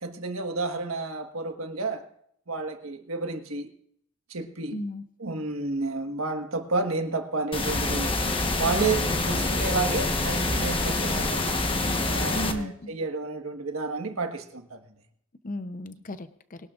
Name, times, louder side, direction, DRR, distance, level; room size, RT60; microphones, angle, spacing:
voice 1, 0.0-2.1 2.5-3.7 4.3-4.8 5.2-8.1 8.5-11.5 12.0-14.8, right 3 dB, 90° right, 1.5 m, -31 dB
voice 2, 4.7-5.0 12.3-12.9 15.4-16.6, left 1 dB, 40° left, 0.6 m, -35 dB
sound 1, 7.5-12.5, left 2 dB, 25° left, 1.1 m, -26 dB
21.5 x 12.0 x 2.5 m
head